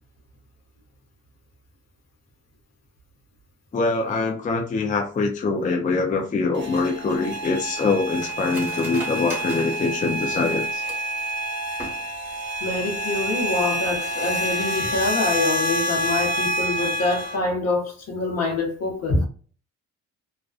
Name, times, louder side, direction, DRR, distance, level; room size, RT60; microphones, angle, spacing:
voice 1, 3.7-10.9, left 3 dB, 25° left, 0.4 m, -24 dB
sound 1, 6.5-17.4, right 1 dB, 35° right, 0.8 m, -28 dB
Cutlery silverware, 6.7-11.2 11.7-12.4 12.7-12.8 13.1-13.5 13.8-14.0, right 1 dB, 5° right, 1.2 m, -40 dB
voice 2, 12.6-19.3, left 2 dB, 55° left, 0.8 m, -25 dB
2.4 x 2.2 x 2.4 m
cardioid pair, 90°, 30 cm